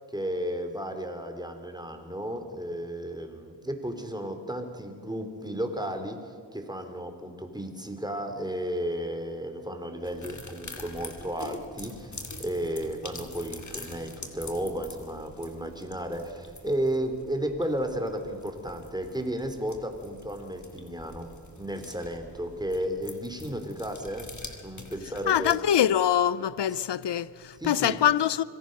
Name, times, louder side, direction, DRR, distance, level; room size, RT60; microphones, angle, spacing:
voice 1, 0.1-24.3 24.6-25.6 27.6-28.0, right 1 dB, 10° right, 3.4 m, -33 dB
sound 1, 10.0-25.6, left 2 dB, 45° left, 2.8 m, -45 dB
voice 2, 25.3-28.4, left 10 dB, 85° left, 0.6 m, -24 dB
25.0 x 17.0 x 6.6 m
cardioid pair, 45°, 41 cm